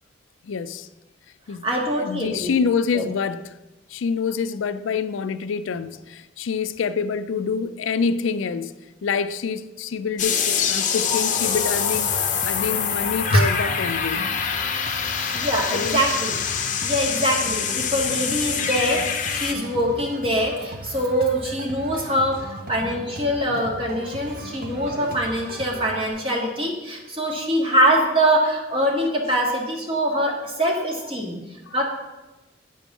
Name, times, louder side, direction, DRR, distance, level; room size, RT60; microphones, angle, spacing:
voice 1, 0.4-0.9 1.5-1.7 2.0-3.4 3.9-8.7 9.0-14.3 15.7-16.0, left 5 dB, 90° left, 0.4 m, -26 dB
voice 2, 1.6-2.5 2.9-3.0 13.3-13.4 15.0-16.4 16.8-19.0 19.3-31.4 31.7-31.8, equal, 30° right, 1.7 m, -23 dB
sound 1, 10.2-19.5, left 7 dB, 40° left, 0.7 m, -25 dB
sound 2, 11.1-26.1, right 1 dB, 50° right, 1.0 m, -38 dB
9.2 x 5.3 x 6.1 m
head